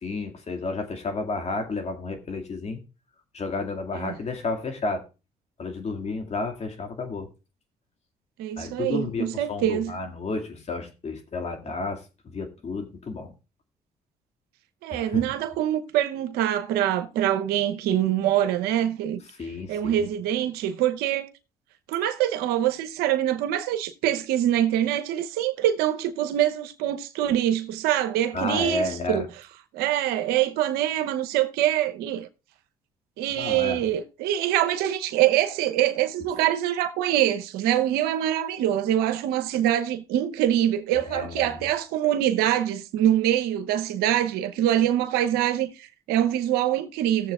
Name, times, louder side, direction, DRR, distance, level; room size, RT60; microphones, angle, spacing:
voice 1, 0.0-2.8 3.3-5.0 5.6-7.3 8.6-13.3 14.9-15.2 19.4-20.1 28.3-29.3 33.4-33.8 40.9-41.7, left 3 dB, 45° left, 2.1 m, -31 dB
voice 2, 8.4-10.0 14.8-19.2 19.7-21.3 21.9-29.3 29.7-32.3 33.2-47.3, right 12 dB, 85° right, 0.8 m, -24 dB
18.0 x 7.2 x 2.4 m
supercardioid pair, 70°, 16 cm